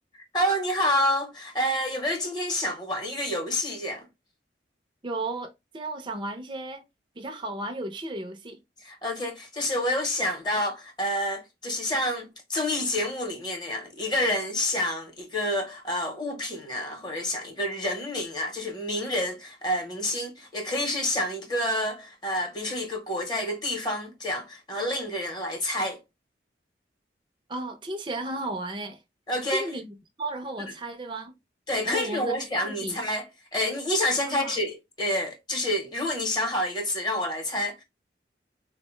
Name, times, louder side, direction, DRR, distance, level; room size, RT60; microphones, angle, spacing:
voice 1, 0.1-4.1 8.8-26.0 29.3-29.7 31.7-33.2 33.5-37.8, left 1 dB, 25° left, 0.8 m, -28 dB
voice 2, 5.0-6.8 7.2-8.6 27.5-29.0 29.5-31.3 31.8-33.0 34.3-34.6, right 2 dB, 30° right, 0.5 m, -34 dB
4.0 x 2.1 x 3.0 m
head